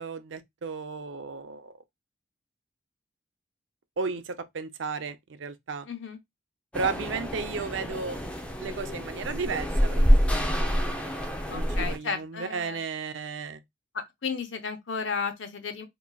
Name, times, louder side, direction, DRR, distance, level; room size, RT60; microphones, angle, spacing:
voice 1, 0.0-1.7 4.0-5.9 6.7-8.2 8.6-10.1 10.8-10.9 11.5-13.6, right 5 dB, 85° right, 0.5 m, -34 dB
voice 2, 5.8-6.2 7.6-7.7 11.5-12.8 13.9-15.8, left 5 dB, 90° left, 0.8 m, -34 dB
sound 1, 6.7-12.0, equal, 5° left, 0.6 m, -26 dB
3.8 x 2.9 x 2.2 m
head